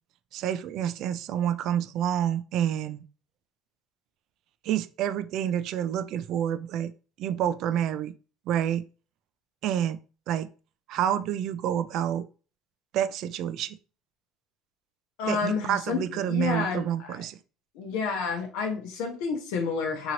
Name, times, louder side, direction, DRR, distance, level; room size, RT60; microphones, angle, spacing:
voice 1, 0.3-3.0 4.6-6.9 7.2-8.1 8.5-8.8 9.6-10.0 10.3-10.5 10.9-12.3 12.9-13.8 15.3-17.4, right 10 dB, 65° right, 0.3 m, -28 dB
voice 2, 15.2-17.3 17.7-20.1, left 5 dB, 80° left, 0.8 m, -30 dB
2.9 x 2.7 x 2.8 m
supercardioid pair, 100°, 0 cm